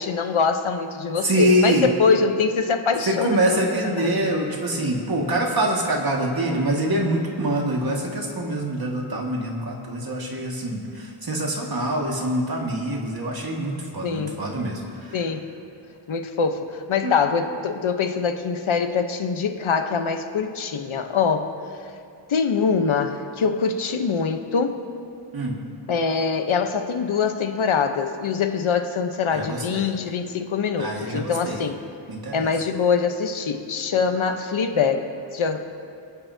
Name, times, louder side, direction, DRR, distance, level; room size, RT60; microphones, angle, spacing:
voice 1, 0.0-3.6 3.9-4.3 14.0-14.4 15.1-15.5 16.1-21.5 22.3-24.8 25.9-31.8 32.3-35.6, left 5 dB, 85° left, 6 dB, 1.1 m, -24 dB
voice 2, 1.2-1.9 3.1-15.2 17.0-17.1 25.3-25.6 29.3-29.9 30.8-31.6 32.1-32.5, right 1 dB, 50° right, -1 dB, 2.0 m, -25 dB
27.0 x 9.5 x 2.8 m, 2.4 s
wide cardioid pair, 95°, 47 cm